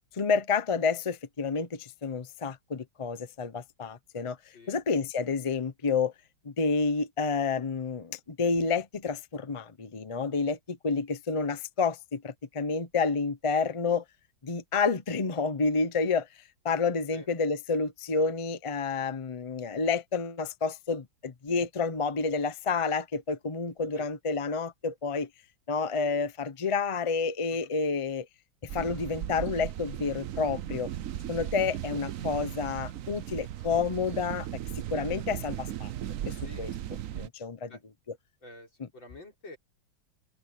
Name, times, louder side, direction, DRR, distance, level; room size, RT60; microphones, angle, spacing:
voice 1, 0.1-4.4 4.7-6.1 6.4-14.0 14.4-16.3 16.6-25.3 25.7-28.3 28.6-30.9 31.3-34.5 34.9-35.9 36.3-36.7 37.1-37.7, left 4 dB, 40° left, 0.4 m, -29 dB
sound 1, 28.7-37.3, right 11 dB, 70° right, 0.7 m, -37 dB
voice 2, 36.4-37.3 37.7-37.8 38.4-39.6, left 2 dB, 70° left, 7.0 m, -50 dB
open air
omnidirectional pair, 2.2 m